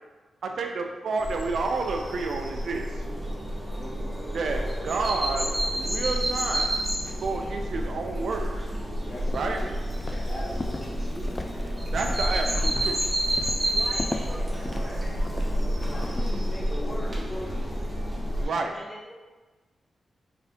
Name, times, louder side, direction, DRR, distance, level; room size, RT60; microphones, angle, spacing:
voice 1, 0.4-3.0 4.3-6.7 7.2-8.6 9.3-9.7 11.9-13.0 18.4-18.7, right 3 dB, 75° right, 3 dB, 0.4 m, -30 dB
sound 1, 1.2-18.4, equal, 20° right, 1.1 m, -29 dB
voice 2, 3.7-4.0 9.1-9.7 10.1-11.3 15.9-17.7, left 1 dB, 50° left, -4 dB, 1.1 m, -39 dB
Walk footsteps, 9.2-16.2, left 2 dB, 30° left, 0.3 m, -38 dB
voice 3, 13.7-15.0 18.3-19.1, equal, ahead, -8 dB, 0.8 m, -43 dB
4.9 x 3.3 x 2.8 m, 1.3 s
cardioid pair, 80°, 0 cm